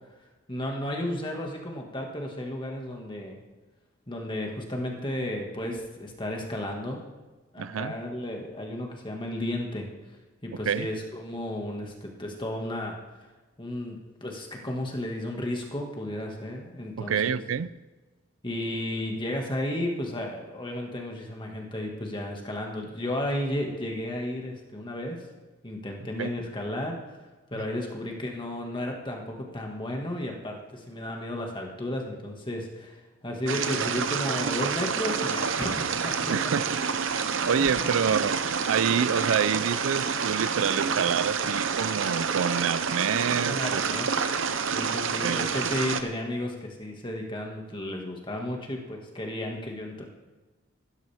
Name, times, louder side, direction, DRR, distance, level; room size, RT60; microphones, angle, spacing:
voice 1, 0.5-3.4 4.1-7.0 7.5-9.9 10.4-13.0 13.6-17.4 18.4-25.2 25.6-27.0 27.5-33.0 33.2-36.5 43.5-44.1 44.7-50.0, left 1 dB, 25° left, 1 dB, 1.9 m, -33 dB
voice 2, 7.6-8.0 10.7-10.9 17.0-17.7 26.2-26.3 27.5-27.6 36.3-36.7 37.5-38.4 38.7-43.8 45.2-45.5, right 7 dB, 85° right, 17 dB, 0.4 m, -27 dB
sound 1, 33.5-46.0, right 6 dB, 70° right, 0.8 m, -28 dB
15.0 x 13.0 x 3.5 m, 1.2 s
head